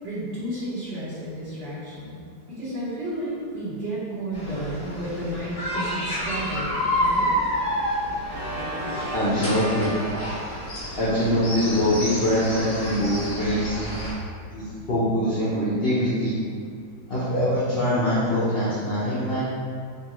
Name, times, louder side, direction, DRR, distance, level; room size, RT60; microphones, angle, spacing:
voice 1, 0.0-6.7 7.0-7.3 14.1-14.2, right 1 dB, 45° right, -10 dB, 1.4 m, -32 dB
sound 1, 4.3-14.1, equal, 55° left, 1.8 m, -29 dB
Organ, 8.2-13.1, right 1 dB, 75° right, 0.6 m, -37 dB
voice 2, 9.1-9.9 11.0-13.8 14.5-16.4 17.1-19.4, equal, 75° left, -9 dB, 0.5 m, -23 dB
5.2 x 2.3 x 3.0 m, 2.2 s
omnidirectional pair, 2.0 m